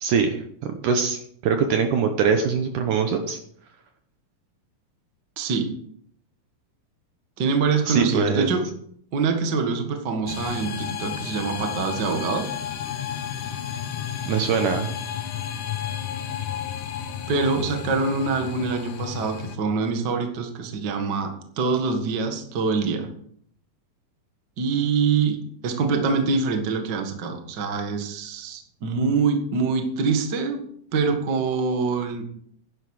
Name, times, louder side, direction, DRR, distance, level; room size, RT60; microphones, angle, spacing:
voice 1, 0.0-3.4 7.9-8.5 14.3-14.9, right 6 dB, 70° right, 6 dB, 2.1 m, -23 dB
voice 2, 5.4-5.7 7.4-8.6 9.1-12.4 17.3-23.1 24.6-30.6 30.9-32.2, right 4 dB, 45° right, 4 dB, 1.5 m, -25 dB
sound 1, 10.3-19.6, left 9 dB, 70° left, 2.2 m, -32 dB
11.5 x 10.5 x 4.9 m, 0.65 s
omnidirectional pair, 4.4 m